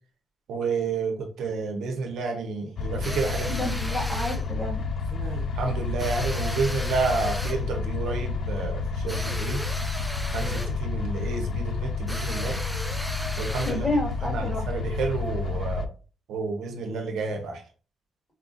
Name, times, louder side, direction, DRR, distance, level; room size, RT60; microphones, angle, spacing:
voice 1, 0.5-4.0 5.1-9.6 10.3-12.6 13.4-13.8 14.3-15.9 16.3-17.6, right 4 dB, 80° right, 2 dB, 0.8 m, -30 dB
sound 1, 2.8-15.8, left 4 dB, 55° left, 0.3 m, -30 dB
sound 2, 3.0-4.5 6.0-7.7 9.1-10.8 12.1-13.9, equal, ahead, 0.5 m, -36 dB
voice 2, 3.5-4.9 13.6-14.7, left 2 dB, 20° left, -2 dB, 1.7 m, -30 dB
4.4 x 2.4 x 2.5 m, 0.36 s
cardioid pair, 90°, 0 cm